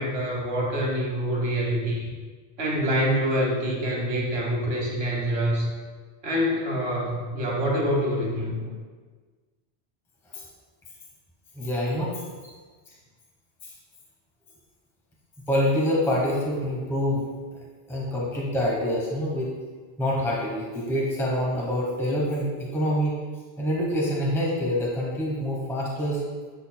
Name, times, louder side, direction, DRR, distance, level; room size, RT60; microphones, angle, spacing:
voice 1, 0.0-2.1 2.6-5.7 6.2-8.7, equal, 80° right, -1 dB, 1.5 m, -26 dB
voice 2, 11.6-12.1 13.6-13.7 15.5-17.3 17.5-17.6 17.9-19.5 20.0-23.1 23.6-26.2, equal, 5° left, -4 dB, 0.9 m, -26 dB
7.8 x 6.4 x 2.2 m, 1.4 s
omnidirectional pair, 1.0 m